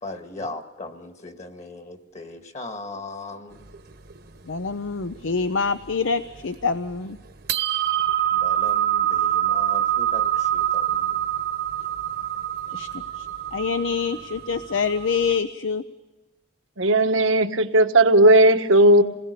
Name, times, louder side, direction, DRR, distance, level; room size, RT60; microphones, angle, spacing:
voice 1, 0.0-3.7 8.3-11.1, left 2 dB, 35° left, 6 dB, 2.0 m, -38 dB
sound 1, 3.5-5.5 5.8-5.9 6.3-6.9 7.3-15.4, right 11 dB, 55° right, 1.1 m, -25 dB
voice 2, 4.5-7.2 12.7-12.9 13.1-15.8, left 5 dB, 75° left, 12 dB, 0.7 m, -26 dB
voice 3, 16.8-19.0, right 1 dB, 90° right, 7 dB, 1.4 m, -16 dB
28.0 x 20.0 x 6.8 m, 1.1 s
head